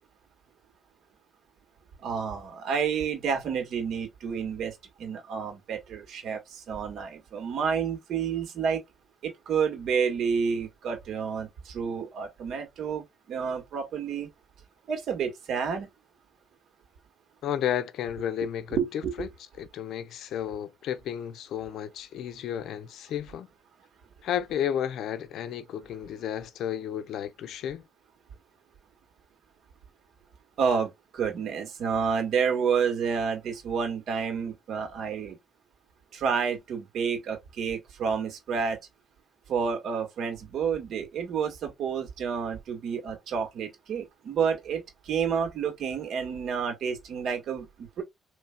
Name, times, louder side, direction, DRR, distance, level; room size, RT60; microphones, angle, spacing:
voice 1, 2.0-8.8 9.2-14.3 14.9-15.9 18.7-19.1 30.6-35.4 36.1-38.8 39.5-48.0, right 6 dB, 70° right, 1.8 m, -30 dB
voice 2, 17.4-18.8 19.2-19.3 19.6-23.5 24.2-27.9, left 9 dB, 80° left, 0.5 m, -32 dB
4.3 x 3.1 x 2.2 m
cardioid pair, 90°, 0 cm